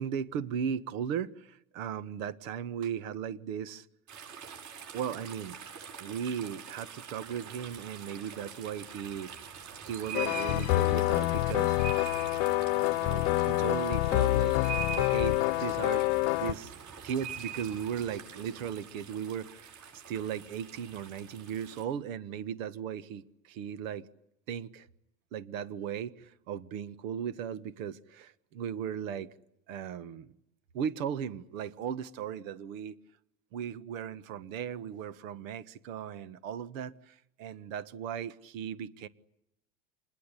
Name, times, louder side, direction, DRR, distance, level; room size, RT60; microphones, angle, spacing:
voice 1, 0.0-3.9 4.9-5.6 6.0-9.4 9.8-11.8 13.0-16.1 16.3-16.7 17.0-24.1 24.5-24.9 25.3-29.3 29.7-30.3 30.7-33.0 33.5-39.1, right 8 dB, 85° right, 1.6 m, -37 dB
sound 1, 4.1-21.8, right 7 dB, 45° right, 7.8 m, -44 dB
sound 2, 10.1-16.5, left 20 dB, 75° left, 1.0 m, -27 dB
26.5 x 21.0 x 9.9 m
supercardioid pair, 135°, 39 cm